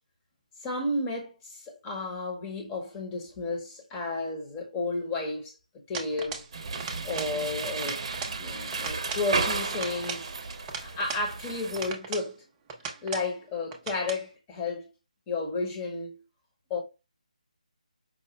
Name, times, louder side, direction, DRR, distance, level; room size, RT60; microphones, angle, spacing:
voice 1, 0.6-5.6 5.9-6.4 7.0-8.0 8.4-10.3 10.8-12.4 12.8-14.9 15.3-16.2 16.7-16.8, left 3 dB, 15° left, 1.0 m, -32 dB
sound 1, 5.9-6.5 6.8-7.4 7.6-8.4 8.7-9.3 9.7-11.3 11.8-12.3 12.7-13.3 13.7-14.2, right 5 dB, 15° right, 0.5 m, -38 dB
sound 2, 6.5-11.9, right 4 dB, 45° right, 0.8 m, -33 dB
5.2 x 2.0 x 3.0 m
figure-of-eight pair, 155°, 4 cm